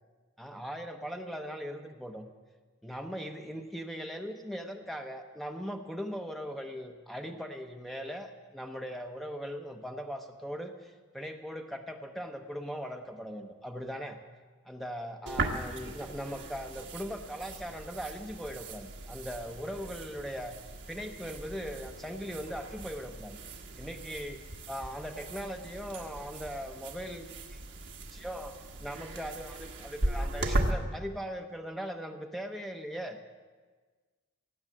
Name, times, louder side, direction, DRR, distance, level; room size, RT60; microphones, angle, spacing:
voice 1, 0.4-2.3 2.8-14.2 14.7-20.6 20.9-23.4 23.8-24.4 24.7-27.6 28.1-28.5 28.8-33.2, equal, ahead, 4 dB, 0.8 m, -39 dB
sound 1, 15.3-30.7, right 2 dB, 55° right, 1.4 m, -38 dB
17.5 x 8.1 x 7.4 m, 1.4 s
head